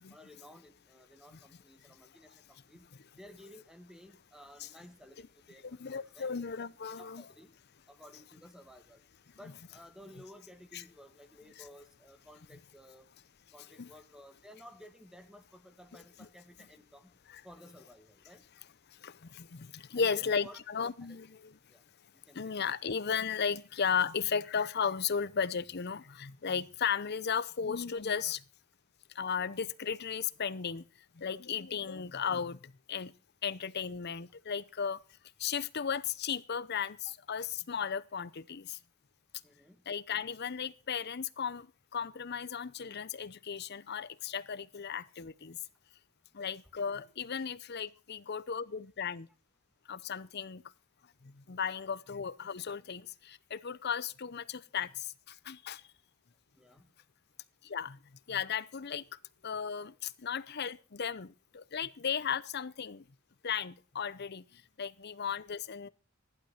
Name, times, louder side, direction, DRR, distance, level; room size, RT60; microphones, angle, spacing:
voice 1, 0.1-6.3 7.0-7.5 7.9-9.0 9.4-13.1 13.5-17.1 17.4-18.5 19.9-20.6 21.0-21.2 21.7-21.8 22.3-22.6 28.3-28.4 39.4-39.8 47.4-47.5 56.5-56.9, equal, 5° right, 1.5 m, -55 dB
voice 2, 5.6-7.2 10.7-10.8 11.6-11.7 13.8-13.9 16.2-16.3 17.3-17.4 19.0-21.5 22.3-28.4 29.2-30.8 31.2-32.6 32.9-33.1 33.4-35.0 35.4-38.8 39.9-41.7 41.9-45.6 46.3-49.3 49.9-50.6 51.5-55.1 55.5-55.8 57.6-58.0 58.3-59.0 59.4-63.0 63.4-64.4 64.8-65.9, left 7 dB, 55° left, 0.7 m, -35 dB
15.0 x 11.5 x 5.6 m
head